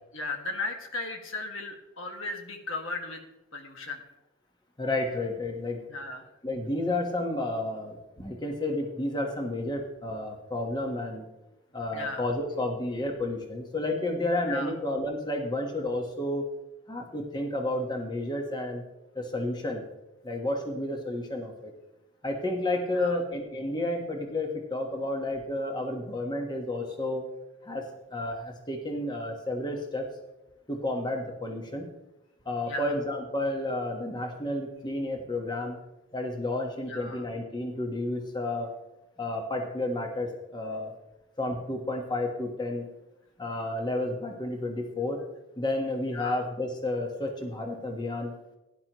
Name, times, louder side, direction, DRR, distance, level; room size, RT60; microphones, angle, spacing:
voice 1, 0.1-3.2 3.5-4.0 5.9-6.3 11.9-12.2 14.5-14.7 22.9-23.2 32.7-33.0 36.9-37.2 46.1-46.4, left 2 dB, 70° left, 3 dB, 1.8 m, -36 dB
voice 2, 4.8-5.8 6.4-11.3 11.7-16.4 16.9-18.8 19.1-19.8 20.2-21.7 22.2-27.2 27.6-30.1 30.7-31.9 32.4-35.8 36.1-38.7 39.2-40.9 41.4-42.9 43.4-45.2 45.6-48.3, left 1 dB, 20° left, 2 dB, 1.2 m, -31 dB
17.0 x 10.5 x 3.0 m, 0.98 s
head